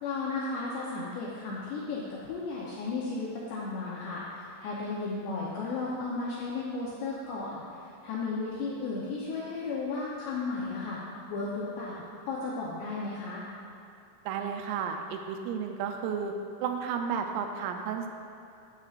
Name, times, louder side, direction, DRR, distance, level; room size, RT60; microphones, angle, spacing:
voice 1, 0.0-11.0 11.3-13.4, left 3 dB, 80° left, -6 dB, 2.5 m, -34 dB
voice 2, 14.3-16.3 16.6-18.1, right 7 dB, 85° right, 5 dB, 3.3 m, -32 dB
13.0 x 8.9 x 2.5 m, 2.7 s
omnidirectional pair, 6.0 m